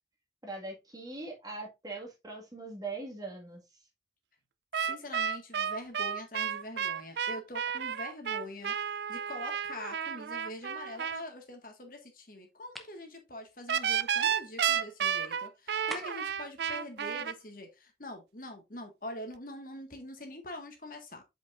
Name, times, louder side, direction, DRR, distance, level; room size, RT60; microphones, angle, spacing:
voice 1, 0.4-3.6, right 3 dB, 20° right, 1.9 m, -41 dB
sound 1, 4.7-11.2 13.7-17.3, right 8 dB, 70° right, 0.4 m, -32 dB
voice 2, 4.8-21.2, left 1 dB, 50° left, 1.8 m, -44 dB
sound 2, 12.7-13.0 15.9-16.4, equal, ahead, 0.9 m, -43 dB
8.1 x 5.4 x 2.5 m
head